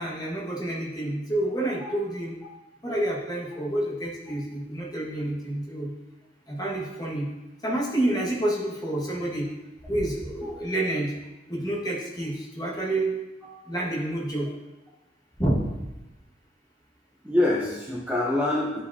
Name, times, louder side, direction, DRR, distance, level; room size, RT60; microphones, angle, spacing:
voice 1, 0.0-2.3 2.8-5.9 6.5-7.3 7.6-9.4 9.9-11.1 11.5-13.1 13.7-14.5 15.4-15.7, right 1 dB, 20° left, -5 dB, 1.7 m, -28 dB
voice 2, 17.2-18.8, left 1 dB, 10° right, -5 dB, 0.8 m, -25 dB
11.0 x 4.8 x 2.8 m, 1.1 s
head